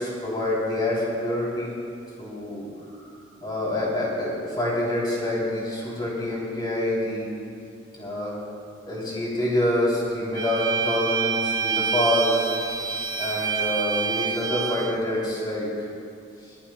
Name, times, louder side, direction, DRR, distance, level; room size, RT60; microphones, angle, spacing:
voice 1, 0.0-1.7 2.2-2.7 3.4-7.3 8.0-8.4 8.8-12.5 13.2-15.9, left 1 dB, 25° left, -5 dB, 3.5 m, -26 dB
Bowed string instrument, 10.3-15.0, right 5 dB, 25° right, 0.6 m, -27 dB
27.0 x 11.5 x 2.4 m, 2.6 s
head